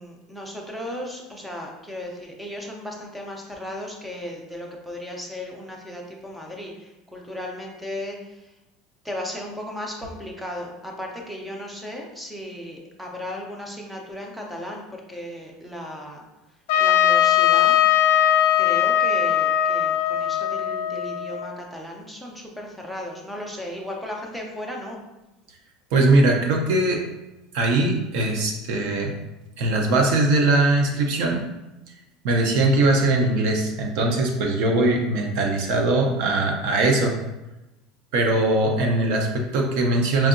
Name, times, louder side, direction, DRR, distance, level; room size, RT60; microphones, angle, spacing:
voice 1, 0.0-8.5 9.0-16.2 16.8-17.8 18.6-25.0, left 1 dB, ahead, 0 dB, 0.5 m, -35 dB
Trumpet, 16.7-21.5, left 11 dB, 85° left, 0.3 m, -20 dB
voice 2, 25.9-27.0 27.5-29.1 29.6-31.4 32.2-37.1 38.1-40.3, right 2 dB, 60° right, 2 dB, 0.6 m, -21 dB
4.5 x 2.7 x 2.5 m, 1.0 s
cardioid pair, 170°, 0 cm